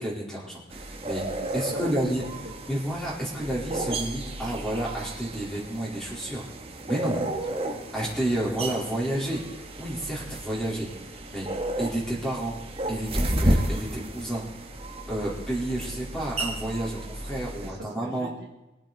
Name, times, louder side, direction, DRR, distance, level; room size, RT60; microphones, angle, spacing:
voice 1, 0.0-2.2 2.7-6.5 6.9-7.3 7.9-9.4 9.8-10.9 11.3-11.5 11.8-12.5 12.9-14.4 15.1-18.3, right 1 dB, 5° left, -6 dB, 4.2 m, -30 dB
sound 1, 0.7-17.7, right 1 dB, 30° right, 1.6 m, -32 dB
voice 2, 1.4-2.5 7.6-7.9 8.2-8.3 10.6-10.7 17.6-18.7, equal, 60° right, -1 dB, 2.2 m, -41 dB
22.5 x 8.7 x 4.2 m, 0.97 s
head